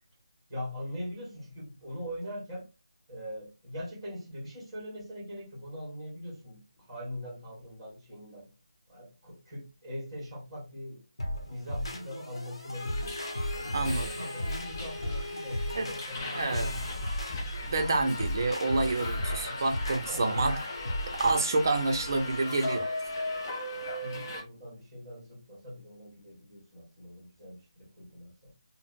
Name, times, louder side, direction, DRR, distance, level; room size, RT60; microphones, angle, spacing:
voice 1, 0.5-2.7 3.1-8.5 8.9-11.0 11.4-13.2 13.5-17.0 18.9-19.1 20.0-20.4 23.7-28.5, equal, 5° right, 1.5 m, -42 dB
sound 1, 11.2-21.5, equal, 60° left, 0.9 m, -36 dB
Subway metro underground, 12.7-24.4, left 2 dB, 30° left, 0.6 m, -37 dB
voice 2, 13.7-14.1 15.7-15.9 16.3-16.7 17.6-20.6 21.1-22.9, right 3 dB, 35° right, 0.5 m, -28 dB
3.7 x 2.0 x 2.4 m
figure-of-eight pair, 170°, 3 cm